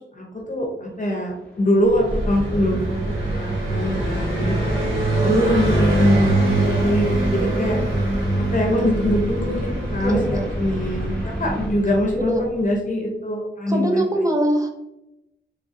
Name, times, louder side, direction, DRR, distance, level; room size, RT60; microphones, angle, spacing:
voice 1, 0.1-4.5 4.8-7.8 8.4-14.1, left 1 dB, 40° left, -1 dB, 0.8 m, -23 dB
sound 1, 0.9-11.7, equal, 5° left, 1.0 m, -44 dB
Car passing by, 1.8-12.5, right 1 dB, 90° right, 1.2 m, -23 dB
voice 2, 10.0-10.5 12.1-12.5 13.7-14.7, right 1 dB, 15° right, 1 dB, 0.8 m, -22 dB
3.8 x 3.4 x 2.6 m, 0.90 s
wide cardioid pair, 85°, 20 cm